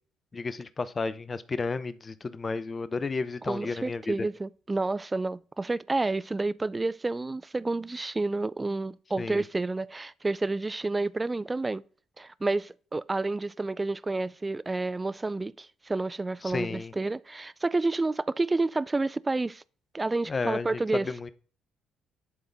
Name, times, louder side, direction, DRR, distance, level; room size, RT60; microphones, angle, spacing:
voice 1, 0.3-4.1 9.2-9.4 16.4-16.9 20.3-21.3, left 4 dB, 35° left, 0.7 m, -32 dB
voice 2, 3.5-11.8 12.2-19.6 19.9-21.1, right 3 dB, 20° right, 0.4 m, -30 dB
11.0 x 3.9 x 3.9 m
hypercardioid pair, 55°, 0 cm